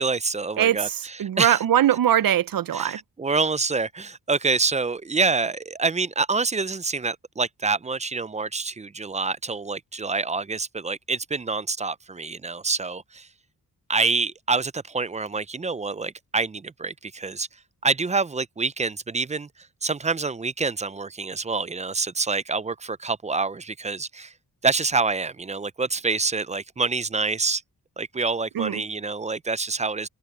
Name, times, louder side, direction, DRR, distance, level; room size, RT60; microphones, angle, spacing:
voice 1, 0.0-1.6 2.7-13.3 13.9-17.5 17.8-19.5 19.8-24.3 24.6-27.6 28.0-30.1, right 4 dB, 20° right, 0.4 m, -26 dB
voice 2, 0.6-3.0 28.5-28.8, right 11 dB, 65° right, 0.6 m, -22 dB
wide cardioid pair, 100°, 38 cm